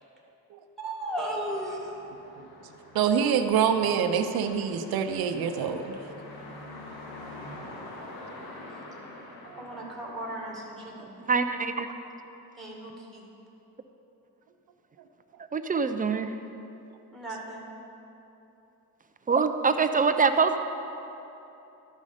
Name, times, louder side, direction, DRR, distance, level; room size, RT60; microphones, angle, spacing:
voice 1, 0.8-1.9 8.7-8.8 9.5-11.2 12.6-13.3 17.1-17.7, right 1 dB, ahead, -3 dB, 2.0 m, -36 dB
sound 1, 1.1-11.4, left 2 dB, 80° left, 1.5 m, -46 dB
voice 2, 2.9-6.1 9.5-9.6 15.0-15.1, right 7 dB, 70° right, 6 dB, 0.7 m, -26 dB
voice 3, 11.2-11.9 15.5-16.4 19.3-20.6, right 5 dB, 25° right, 8 dB, 0.3 m, -24 dB
13.0 x 5.4 x 4.9 m, 3.0 s
cardioid pair, 110°, 38 cm